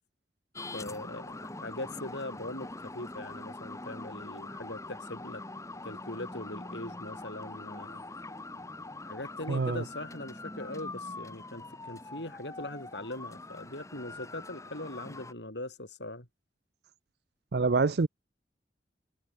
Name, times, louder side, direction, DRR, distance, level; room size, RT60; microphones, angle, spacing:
sound 1, 0.6-15.3, left 2 dB, 20° left, 3.3 m, -43 dB
voice 1, 0.7-5.4 5.8-8.0 9.0-16.3, left 1 dB, 85° left, 6.7 m, -41 dB
voice 2, 9.5-9.8 17.5-18.1, right 4 dB, 65° right, 0.6 m, -26 dB
head